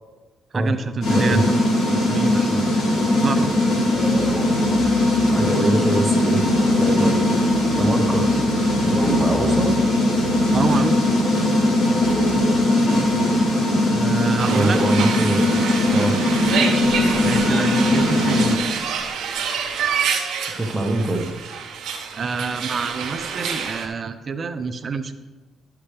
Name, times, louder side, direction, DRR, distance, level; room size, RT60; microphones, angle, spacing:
voice 1, 0.5-1.5 1.9-2.7 3.2-3.5 7.9-8.0 10.5-11.2 13.9-14.8 17.2-18.7 22.1-25.1, right 5 dB, 45° right, 10 dB, 0.5 m, -26 dB
sound 1, 1.0-18.6, left 1 dB, 75° left, 2.5 m, -19 dB
voice 2, 1.1-1.4 4.0-4.1 5.3-6.4 6.7-8.3 8.8-9.7 14.5-15.4 15.9-16.2 20.6-21.3, right 2 dB, 10° right, 2 dB, 1.3 m, -23 dB
sound 2, 3.9-5.2 6.4-10.7 12.0-12.4, left 1 dB, 25° left, 3.1 m, -32 dB
sound 3, 14.4-23.9, right 6 dB, 80° right, 1.1 m, -27 dB
12.5 x 5.8 x 3.4 m, 1.3 s
cardioid pair, 90°, 0 cm